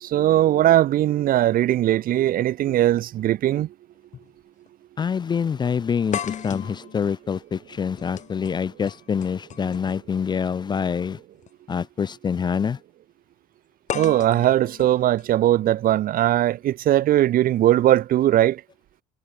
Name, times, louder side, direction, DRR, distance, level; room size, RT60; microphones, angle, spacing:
voice 1, 0.0-3.7 13.9-18.6, right 13 dB, 60° right, 0.6 m, -19 dB
sound 1, 2.9-3.0 4.1-4.3 4.7-4.8 6.1-10.2 11.3-11.5 13.9-15.9, left 9 dB, 45° left, 1.4 m, -36 dB
voice 2, 5.0-11.2 11.7-12.8, left 6 dB, 25° left, 0.4 m, -26 dB
cardioid pair, 110°, 17 cm